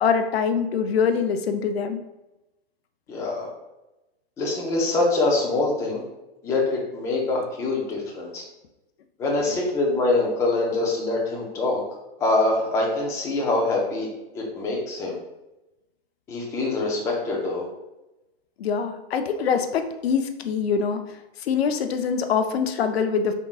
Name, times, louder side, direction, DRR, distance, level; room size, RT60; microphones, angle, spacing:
voice 1, 0.0-2.0 9.4-9.6 18.6-21.0 21.4-23.3, left 6 dB, 75° left, 8 dB, 0.6 m, -24 dB
voice 2, 3.1-3.5 4.4-6.0 6.4-8.4 9.2-11.8 12.2-15.2 16.3-17.6, left 2 dB, 10° left, -2 dB, 0.5 m, -24 dB
5.2 x 3.6 x 2.4 m, 0.98 s
hypercardioid pair, 150°, 31 cm